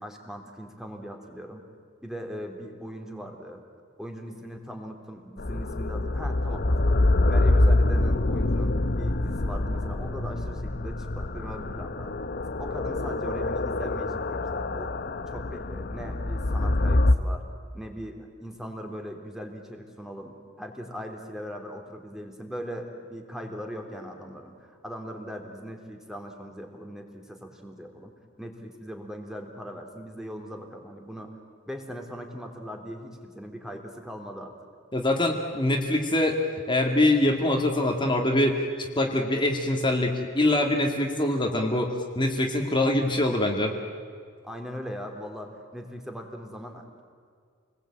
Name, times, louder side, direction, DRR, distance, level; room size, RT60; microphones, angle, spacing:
voice 1, 0.0-1.6 2.0-3.6 4.0-12.1 12.6-15.0 15.3-17.4 17.7-28.1 28.4-31.3 31.6-34.5 44.4-47.0, equal, ahead, 3 dB, 3.4 m, -39 dB
sound 1, 5.4-17.2, left 2 dB, 50° left, 1.0 m, -25 dB
voice 2, 34.9-36.4 36.7-43.7, left 1 dB, 25° left, 2 dB, 2.2 m, -24 dB
29.0 x 21.0 x 8.9 m, 2.1 s
head